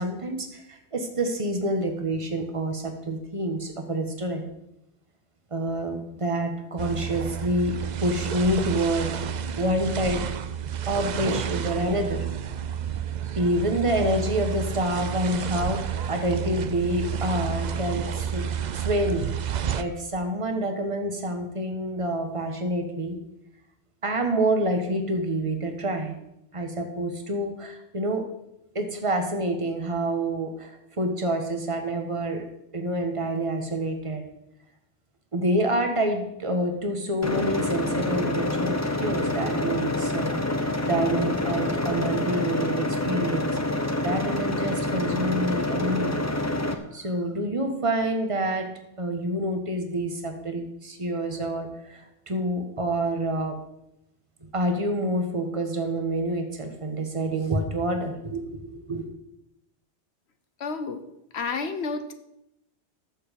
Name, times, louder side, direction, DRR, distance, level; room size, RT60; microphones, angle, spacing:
voice 1, 0.0-4.5 5.5-10.3 10.9-12.3 13.4-18.5 18.7-23.2 24.0-26.1 26.5-28.2 28.7-32.4 32.7-34.2 35.3-43.6 44.0-46.2 46.6-48.7 49.0-53.6 54.5-59.1, right 1 dB, 30° right, 5 dB, 1.4 m, -27 dB
sound 1, 6.8-19.8, right 8 dB, 55° right, 0.5 m, -30 dB
sound 2, 37.2-46.7, left 1 dB, 15° left, 0.8 m, -27 dB
voice 2, 60.6-61.1 61.3-62.1, left 4 dB, 70° left, 9 dB, 1.0 m, -30 dB
13.5 x 7.0 x 5.2 m, 0.85 s
omnidirectional pair, 1.2 m